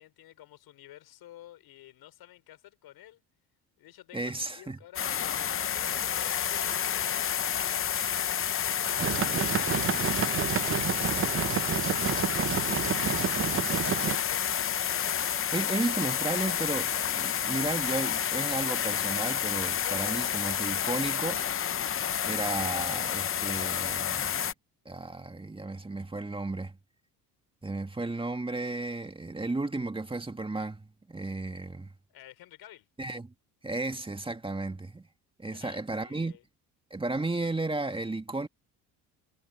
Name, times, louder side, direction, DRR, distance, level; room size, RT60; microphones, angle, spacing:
voice 1, 0.0-3.2 3.8-8.3 9.1-14.6 32.1-32.9 35.5-36.4, left 14 dB, 65° left, 4.6 m, -52 dB
voice 2, 4.1-4.8 15.5-21.4 22.2-24.5 24.9-26.7 27.6-31.9 33.0-33.3 33.6-35.1 35.4-36.4 36.9-38.5, right 2 dB, 15° right, 2.1 m, -34 dB
sound 1, 5.0-24.5, left 9 dB, 35° left, 0.8 m, -30 dB
sound 2, 9.0-14.2, right 9 dB, 30° right, 0.7 m, -30 dB
supercardioid pair, 90°, 39 cm